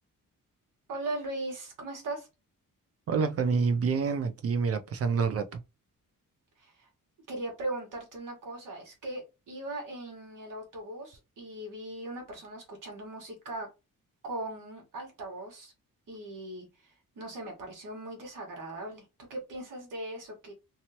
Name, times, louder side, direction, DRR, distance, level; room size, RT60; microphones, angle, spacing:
voice 1, 0.9-2.3 6.6-6.9 7.3-13.7 14.2-15.7 16.1-20.5, right 2 dB, 65° right, 1.5 m, -39 dB
voice 2, 3.1-5.6, right 5 dB, 45° right, 0.5 m, -27 dB
2.9 x 2.7 x 2.8 m
wide cardioid pair, 175°, 34 cm